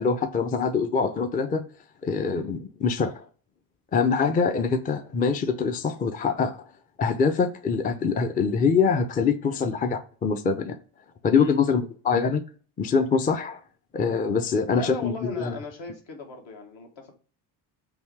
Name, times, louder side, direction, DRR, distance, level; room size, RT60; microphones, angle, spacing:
voice 1, 0.0-1.6 2.0-3.2 3.9-6.6 7.0-10.8 11.2-12.4 12.8-13.6 13.9-15.5, left 5 dB, 20° left, 7 dB, 0.4 m, -24 dB
voice 2, 14.7-17.2, left 3 dB, 60° left, 2 dB, 1.5 m, -38 dB
3.5 x 2.6 x 4.5 m, 0.40 s
supercardioid pair, 75°, 50 cm